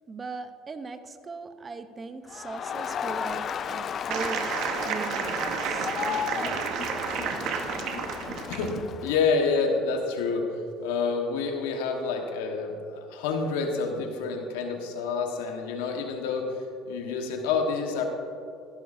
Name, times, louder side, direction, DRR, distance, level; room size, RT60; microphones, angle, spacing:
voice 1, 0.1-4.6 4.9-5.9, right 4 dB, 25° right, 10 dB, 0.8 m, -39 dB
Crowd, 2.3-9.3, left 7 dB, 45° left, 0.4 m, -34 dB
sound 1, 4.1-8.8, right 6 dB, 65° right, 1.0 m, -31 dB
voice 2, 8.5-10.5 10.8-16.5 16.9-18.0, left 4 dB, 90° left, 3 dB, 1.3 m, -28 dB
14.5 x 11.5 x 2.6 m, 2.6 s
supercardioid pair, 95°, 0 cm